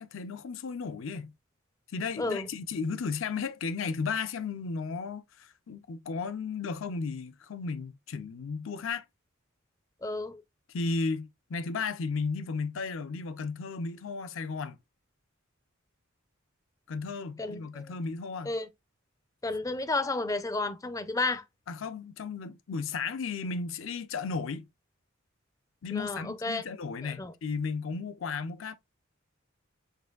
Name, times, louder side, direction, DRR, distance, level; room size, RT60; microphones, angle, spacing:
voice 1, 0.0-1.3 1.9-9.0 10.7-14.8 16.9-18.5 21.7-24.7 25.8-28.7, left 4 dB, 70° left, 0.5 m, -34 dB
voice 2, 2.2-2.5 10.0-10.4 17.4-17.9 18.5-18.7 19.4-21.4 25.9-26.6 27.0-27.3, left 2 dB, 15° left, 0.4 m, -32 dB
6.6 x 2.5 x 2.3 m
head